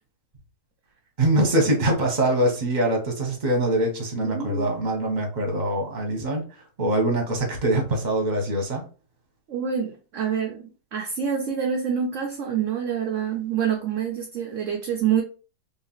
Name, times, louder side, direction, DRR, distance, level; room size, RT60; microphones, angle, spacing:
voice 1, 1.2-8.9, right 1 dB, 30° right, 1.1 m, -23 dB
voice 2, 4.2-4.7 9.5-10.6 10.9-15.2, right 7 dB, 60° right, 0.9 m, -26 dB
3.7 x 3.2 x 3.0 m
omnidirectional pair, 1.8 m